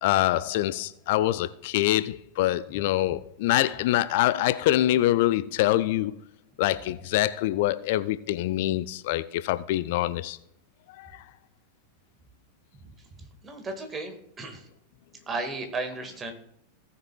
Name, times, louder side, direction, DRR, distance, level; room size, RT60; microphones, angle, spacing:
voice 1, 0.0-6.1 6.6-10.4 10.9-11.2, left 14 dB, 50° left, 0.3 m, -25 dB
voice 2, 13.4-14.6 15.3-16.3, right 3 dB, 20° right, 1.7 m, -34 dB
17.0 x 6.7 x 2.3 m
figure-of-eight pair, 90°, 0 cm